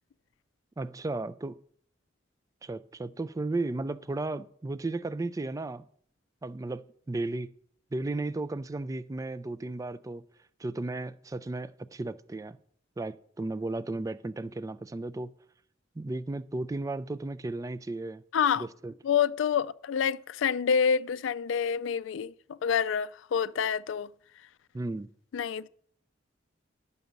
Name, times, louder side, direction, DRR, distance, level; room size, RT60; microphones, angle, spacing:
voice 1, 0.8-1.6 2.6-5.8 6.4-7.5 7.9-10.2 10.6-12.6 13.0-15.3 16.0-18.2 18.6-18.9 24.7-25.1, right 2 dB, 20° right, 0.3 m, -34 dB
voice 2, 18.3-18.7 19.0-24.1 25.3-25.7, left 7 dB, 75° left, 0.3 m, -27 dB
10.5 x 7.0 x 5.2 m
head